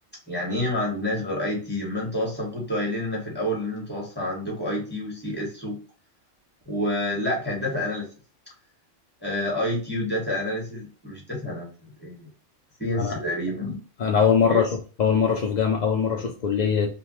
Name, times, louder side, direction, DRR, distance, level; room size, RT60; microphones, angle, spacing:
voice 1, 0.3-5.8 6.7-8.1 9.2-12.3 12.8-13.8 14.5-14.6, left 1 dB, 10° left, -3 dB, 1.3 m, -28 dB
voice 2, 14.0-14.7 15.0-16.9, left 6 dB, 75° left, 1 dB, 0.4 m, -22 dB
3.1 x 2.2 x 2.9 m, 0.37 s
omnidirectional pair, 1.3 m